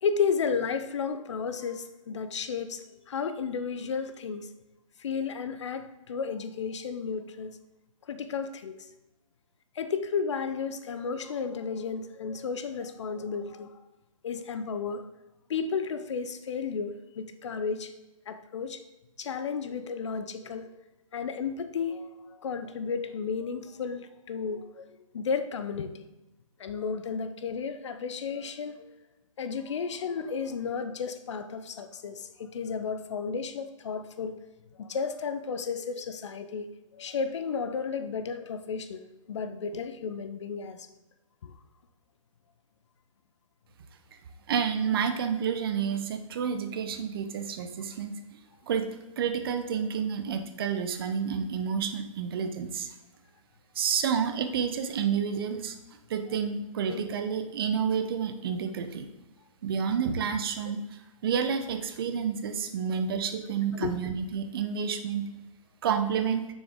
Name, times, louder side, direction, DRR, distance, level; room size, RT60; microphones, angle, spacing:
voice 1, 0.0-4.5 5.0-7.6 8.1-8.8 9.8-13.7 14.2-15.0 15.5-17.9 18.3-18.8 19.2-20.7 21.1-24.9 25.1-26.1 26.6-28.9 29.4-34.4 34.8-40.9 41.4-41.5 56.9-57.0 63.7-64.0, left 5 dB, 55° left, 11 dB, 0.7 m, -33 dB
voice 2, 44.5-48.4 48.7-48.9 49.2-52.9 53.7-55.7 56.1-59.1 59.6-65.3 65.8-66.5, right 7 dB, 40° right, 8 dB, 0.8 m, -29 dB
7.0 x 6.3 x 3.6 m, 1.0 s
hypercardioid pair, 145°, 18 cm